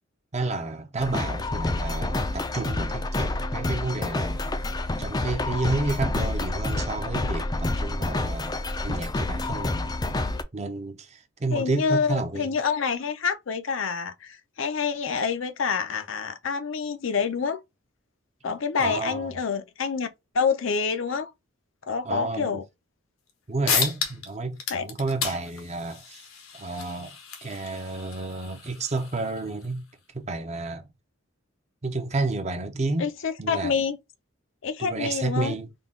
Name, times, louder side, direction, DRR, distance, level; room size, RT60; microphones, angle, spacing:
voice 1, 0.3-4.5 5.0-10.0 10.5-12.6 18.8-19.3 22.0-22.6 23.5-26.2 26.5-27.1 27.4-29.8 30.1-30.9 31.8-33.1 33.4-33.8 34.8-35.7, right 3 dB, 35° right, 0.6 m, -31 dB
sound 1, 1.0-10.4, left 2 dB, 20° left, 0.4 m, -28 dB
voice 2, 11.5-17.6 18.4-20.1 20.3-21.3 21.9-22.6 24.7-24.9 33.0-34.0 34.6-35.6, left 5 dB, 70° left, 0.6 m, -27 dB
sound 2, 23.3-23.4 23.7-24.3 24.6-29.7, left 6 dB, 90° left, 1.1 m, -32 dB
3.8 x 2.3 x 3.6 m
head